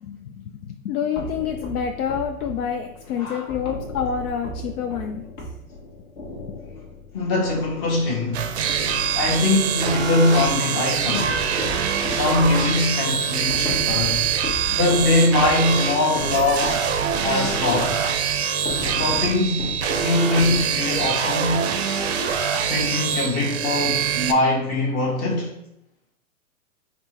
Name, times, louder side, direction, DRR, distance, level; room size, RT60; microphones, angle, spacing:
voice 1, 0.0-5.3 6.4-6.5, left 7 dB, 80° left, 0.5 m, -28 dB
sound 1, 1.2-8.3 8.7-10.7 11.1-21.1, left 1 dB, 45° left, 1.1 m, -35 dB
voice 2, 7.1-8.5 9.1-11.4 12.1-14.3 14.7-16.8 17.2-17.9 18.8-21.7 22.5-25.5, left 2 dB, 15° left, 0.6 m, -22 dB
sound 2, 8.3-24.3, right 7 dB, 50° right, 0.5 m, -24 dB
4.4 x 2.1 x 4.1 m
hypercardioid pair, 145°, 44 cm